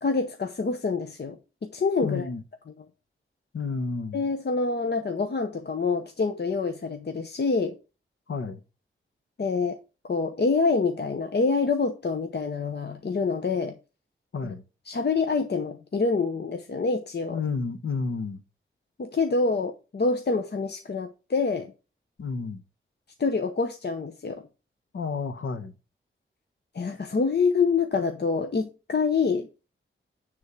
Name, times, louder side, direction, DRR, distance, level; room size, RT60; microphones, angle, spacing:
voice 1, 0.0-2.3 2.8-2.9 4.1-7.8 9.4-9.8 10.1-13.7 14.4-14.5 14.9-17.4 19.0-21.7 23.2-24.4 26.7-29.5, left 4 dB, 55° left, 0.8 m, -26 dB
voice 2, 2.0-2.4 3.5-4.2 8.3-8.6 14.3-14.6 17.3-18.4 22.2-22.6 24.9-25.7, left 4 dB, 85° left, 0.9 m, -31 dB
9.6 x 3.6 x 6.6 m
wide cardioid pair, 85°, 21 cm